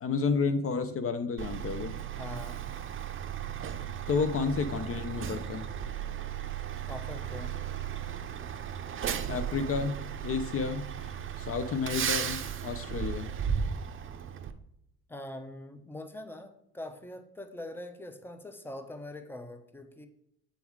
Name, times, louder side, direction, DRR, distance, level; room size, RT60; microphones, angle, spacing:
voice 1, 0.0-1.9 4.1-5.7 9.3-13.3, left 5 dB, 50° left, 10 dB, 0.7 m, -31 dB
Truck, 1.4-14.5, right 8 dB, 40° right, 0.6 m, -35 dB
voice 2, 2.2-2.6 6.9-7.5 15.1-20.1, left 1 dB, 5° left, 8 dB, 0.8 m, -43 dB
8.4 x 3.8 x 4.6 m, 0.75 s
cardioid pair, 90°, 30 cm